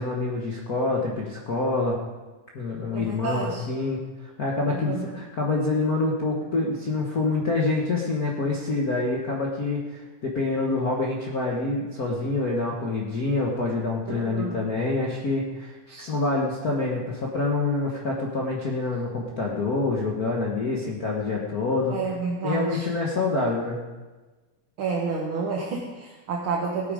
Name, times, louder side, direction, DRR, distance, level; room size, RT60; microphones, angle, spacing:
voice 1, 0.0-2.0 2.5-22.0 22.4-23.8, left 3 dB, 75° left, -2 dB, 0.8 m, -26 dB
voice 2, 2.9-3.6 4.7-5.1 14.1-14.6 15.9-16.1 21.9-22.9 24.8-26.9, right 4 dB, 55° right, -2 dB, 1.7 m, -30 dB
17.5 x 8.8 x 5.0 m, 1.2 s
omnidirectional pair, 3.7 m